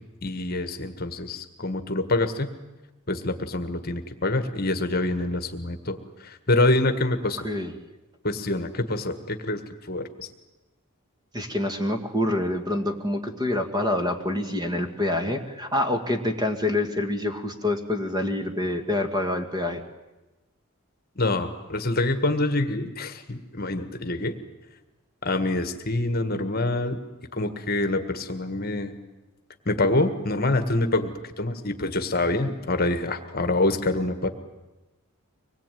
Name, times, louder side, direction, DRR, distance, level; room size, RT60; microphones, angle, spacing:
voice 1, 0.2-2.5 3.1-7.5 8.2-9.6 9.9-10.3 21.2-24.3 25.2-27.0 27.3-28.9 29.6-34.3, left 2 dB, 45° left, 9 dB, 1.6 m, -26 dB
voice 2, 11.3-19.8, left 1 dB, 20° right, 5 dB, 1.8 m, -26 dB
24.5 x 20.5 x 9.2 m, 1.1 s
head